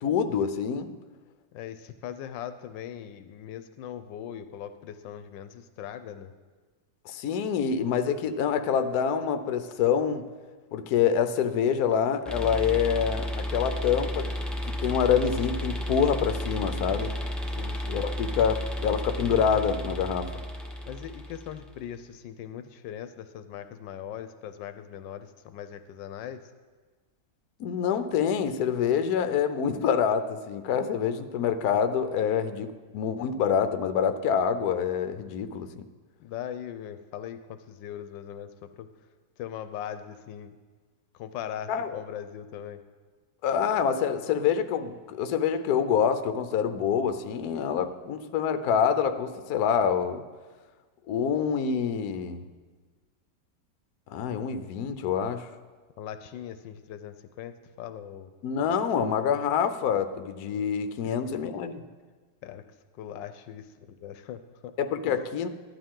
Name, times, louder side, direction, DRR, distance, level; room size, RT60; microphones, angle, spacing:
voice 1, 0.0-0.9 7.1-10.2 10.7-14.3 14.7-17.1 17.9-20.3 27.6-35.8 41.7-42.0 43.4-50.2 51.1-52.5 54.1-55.5 58.4-61.8 64.8-65.5, left 7 dB, 65° left, 9 dB, 1.1 m, -26 dB
voice 2, 1.5-6.3 17.5-18.0 20.9-26.4 36.2-38.9 39.4-40.6 41.1-42.8 56.0-58.3 61.0-61.2 62.4-62.6 62.9-64.7 65.1-65.2, left 9 dB, 85° left, 10 dB, 1.3 m, -40 dB
sound 1, 12.3-21.7, equal, ahead, 0.4 m, -33 dB
13.5 x 11.5 x 3.7 m, 1.4 s
omnidirectional pair, 2.0 m